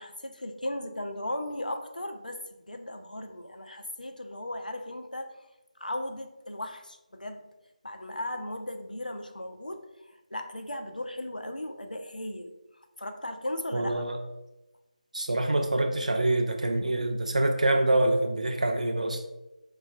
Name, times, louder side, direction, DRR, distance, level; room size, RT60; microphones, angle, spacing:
voice 1, 0.0-2.4 2.7-5.4 5.8-7.5 7.8-12.5 13.0-14.0, left 1 dB, 85° left, 5 dB, 0.4 m, -36 dB
voice 2, 13.7-14.2 15.1-19.2, right 2 dB, 60° right, 4 dB, 0.3 m, -26 dB
4.1 x 2.2 x 2.3 m, 0.99 s
figure-of-eight pair, 160°, 4 cm